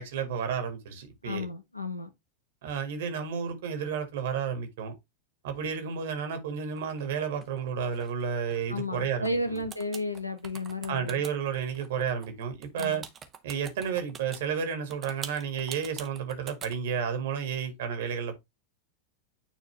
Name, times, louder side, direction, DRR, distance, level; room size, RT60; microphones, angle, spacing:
voice 1, 0.0-1.4 2.6-4.9 5.4-9.6 10.9-13.0 13.4-18.4, right 7 dB, 55° right, 1.8 m, -32 dB
voice 2, 1.2-2.1 8.7-11.2 12.8-13.0, left 1 dB, 85° left, 1.1 m, -33 dB
sound 1, 6.8-9.3 9.6-14.4 14.9-16.7, right 7 dB, 25° right, 1.1 m, -44 dB
9.5 x 3.8 x 3.2 m
figure-of-eight pair, 90°, 0 cm